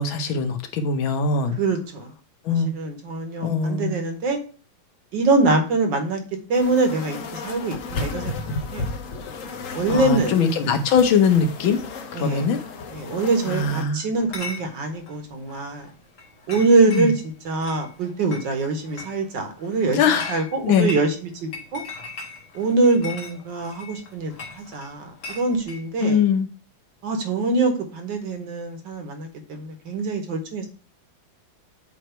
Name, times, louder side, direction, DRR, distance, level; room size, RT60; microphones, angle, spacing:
voice 1, 0.0-1.6 2.4-2.7 3.4-3.9 9.9-11.8 12.1-12.6 13.5-14.0 17.0-17.1 19.9-20.9 26.0-26.5, left 5 dB, 75° left, 1.6 m, -21 dB
voice 2, 1.6-2.1 2.5-4.4 5.1-6.2 6.5-8.3 8.7-8.9 9.4-10.3 12.1-12.5 12.9-15.9 16.5-21.8 22.5-26.2 27.0-30.7, right 3 dB, 65° right, 1.8 m, -24 dB
sound 1, 6.5-13.8, left 3 dB, 60° left, 0.8 m, -34 dB
Chatter / Chink clink, 14.1-25.8, left 3 dB, 45° left, 1.6 m, -40 dB
7.9 x 3.1 x 4.3 m
omnidirectional pair, 2.2 m